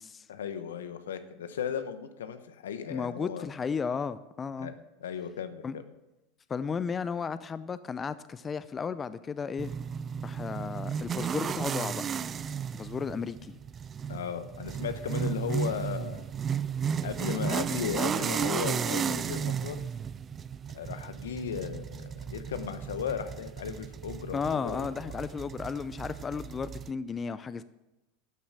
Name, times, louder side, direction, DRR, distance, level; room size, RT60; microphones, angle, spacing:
voice 1, 0.3-3.5 4.6-4.7 5.0-5.8 14.1-16.3 17.0-19.8 20.7-24.9, left 8 dB, 85° left, 11 dB, 0.9 m, -36 dB
voice 2, 2.9-4.7 5.6-5.8 6.5-9.7 10.2-12.0 12.7-13.6 24.3-27.6, left 6 dB, 25° left, 14 dB, 0.5 m, -34 dB
sound 1, 9.6-26.9, right 7 dB, 30° right, 0.3 m, -34 dB
12.0 x 7.1 x 6.1 m, 0.99 s
hypercardioid pair, 90°, 0 cm